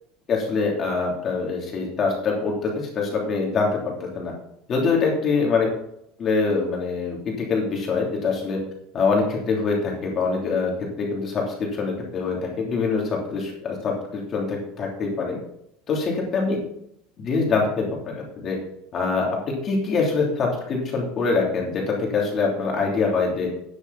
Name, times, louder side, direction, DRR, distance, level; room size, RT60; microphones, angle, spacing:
voice 1, 0.3-4.3 4.7-5.7 6.2-8.6 8.9-15.4 15.9-16.6 17.2-18.6 18.9-23.5, left 4 dB, 25° left, -1 dB, 3.1 m, -24 dB
12.0 x 9.9 x 4.1 m, 0.75 s
cardioid pair, 180°, 0 cm